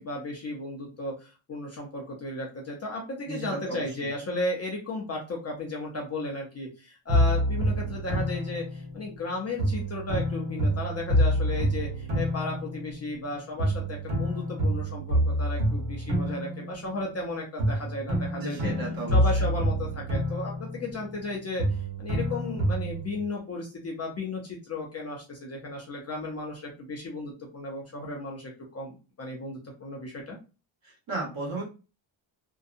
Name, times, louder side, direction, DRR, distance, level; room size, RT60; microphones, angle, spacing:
voice 1, 0.0-18.7 19.1-21.6 22.0-30.4, left 2 dB, 30° left, -1 dB, 0.5 m, -35 dB
voice 2, 3.3-3.8 18.3-19.5 31.1-31.6, right 2 dB, 45° right, -2 dB, 1.3 m, -34 dB
sound 1, 7.1-9.2 9.6-13.3 13.6-17.3 17.6-21.3 21.6-23.2, equal, 85° right, 1.2 m, -27 dB
2.7 x 2.2 x 2.4 m, 0.31 s
cardioid pair, 170°, 50 cm